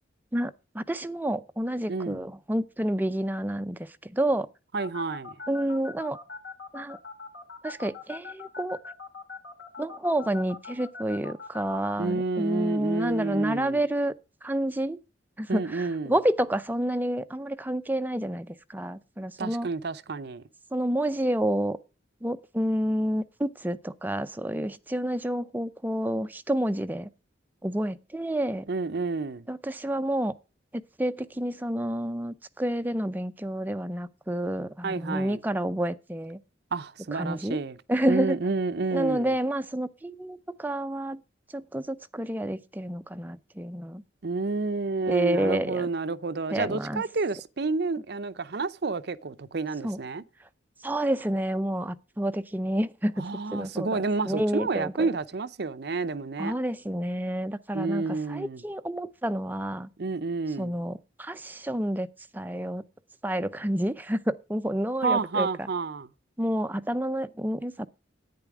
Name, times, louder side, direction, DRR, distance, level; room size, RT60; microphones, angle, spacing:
voice 1, 0.3-4.5 5.5-6.2 6.7-7.0 7.6-8.8 9.8-14.1 14.4-15.0 15.4-19.7 20.7-21.8 22.2-27.1 27.6-28.7 29.5-30.3 31.0-36.4 37.1-37.6 37.9-38.4 38.9-41.2 41.5-44.0 45.1-45.9 46.5-47.0 49.8-50.0 50.8-53.2 53.5-54.0 54.2-55.1 56.4-58.0 58.3-59.9 60.6-62.1 62.3-62.8 63.2-65.5 66.4-67.9, right 1 dB, 10° right, 0.5 m, -29 dB
voice 2, 1.9-2.2 4.7-5.3 12.0-13.8 15.5-16.2 19.4-20.4 28.7-29.5 34.8-35.4 36.7-37.8 38.1-39.4 44.2-50.2 53.2-56.5 57.7-58.6 60.0-60.8 65.0-66.1, right 3 dB, 55° right, 0.6 m, -30 dB
sound 1, 4.8-11.9, left 4 dB, 65° left, 3.2 m, -41 dB
10.5 x 9.1 x 4.8 m
head